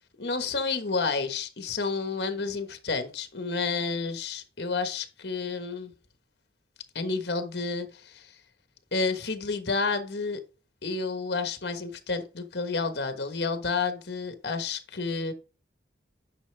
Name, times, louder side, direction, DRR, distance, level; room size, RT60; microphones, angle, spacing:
voice 1, 0.2-5.9 6.9-8.3 8.9-10.4 10.8-15.3, left 4 dB, 60° left, 1.3 m, -30 dB
10.0 x 6.0 x 3.4 m
head